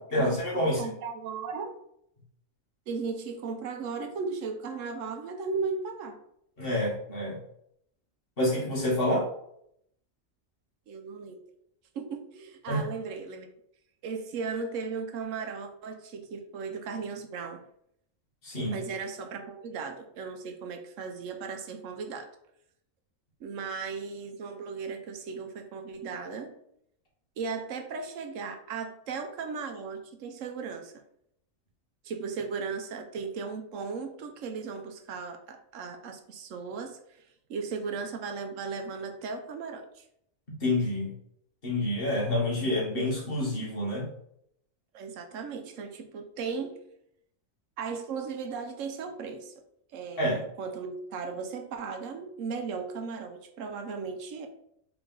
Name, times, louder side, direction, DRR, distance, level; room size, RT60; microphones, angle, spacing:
voice 1, 0.1-0.8 6.6-7.4 8.4-9.3 12.7-12.8 18.4-18.8 40.6-41.1 41.6-44.0 50.2-50.4, left 1 dB, 45° left, -4 dB, 1.6 m, -27 dB
voice 2, 0.8-1.7 2.9-6.2 10.9-11.4 11.9-13.5 14.0-17.6 18.6-22.3 23.4-26.6 27.4-30.9 32.0-40.0 44.9-46.8 47.8-49.5 49.9-54.5, right 5 dB, 75° right, 5 dB, 1.0 m, -36 dB
3.9 x 3.5 x 3.7 m, 0.72 s
omnidirectional pair, 1.4 m